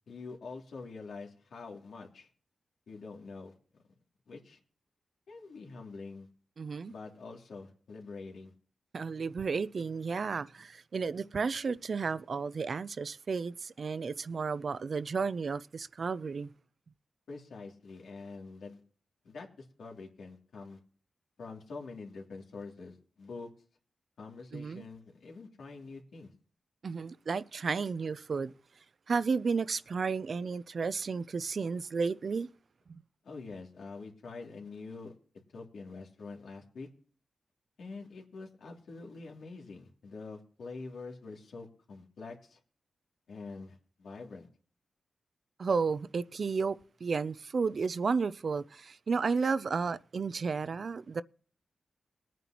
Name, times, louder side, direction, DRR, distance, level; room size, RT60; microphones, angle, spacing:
voice 1, 0.1-2.3 2.9-3.5 4.3-4.6 5.3-6.3 6.9-8.5 17.3-18.8 19.2-20.8 21.4-23.5 24.2-26.3 33.2-35.1 35.5-36.9 37.8-42.6 43.3-44.5, left 4 dB, 80° left, 2.7 m, -45 dB
voice 2, 6.6-6.9 8.9-16.5 24.5-24.8 26.8-28.5 29.1-32.5 32.9-33.0 45.6-51.2, right 5 dB, 50° right, 0.5 m, -32 dB
21.0 x 9.2 x 3.0 m
wide cardioid pair, 150°, 0 cm